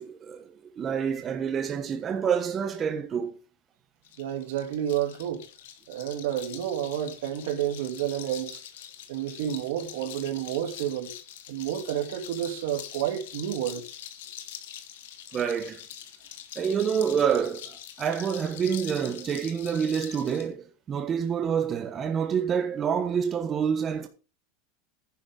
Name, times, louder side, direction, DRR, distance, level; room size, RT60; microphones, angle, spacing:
voice 1, 0.0-3.3 15.3-15.8 16.5-24.1, right 7 dB, 25° right, 1.1 m, -27 dB
sound 1, 4.0-20.5, left 10 dB, 80° left, 2.3 m, -44 dB
voice 2, 4.2-5.4 5.9-8.6 9.1-11.1 11.5-13.9, right 11 dB, 70° right, 2.9 m, -30 dB
11.5 x 10.0 x 3.8 m
supercardioid pair, 160°, 0 cm